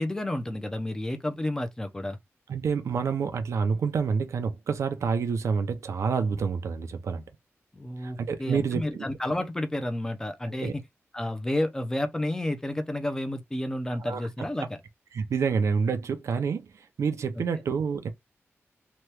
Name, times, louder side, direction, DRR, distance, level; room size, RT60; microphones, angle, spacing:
voice 1, 0.0-2.2 7.7-10.8 11.1-14.8, left 1 dB, 10° left, 0.5 m, -31 dB
voice 2, 2.5-7.2 8.0-9.1 10.6-10.7 14.0-14.3 15.1-16.7 17.0-18.1, right 5 dB, 80° right, 0.5 m, -28 dB
2.9 x 2.3 x 3.2 m
wide cardioid pair, 135°, 5 cm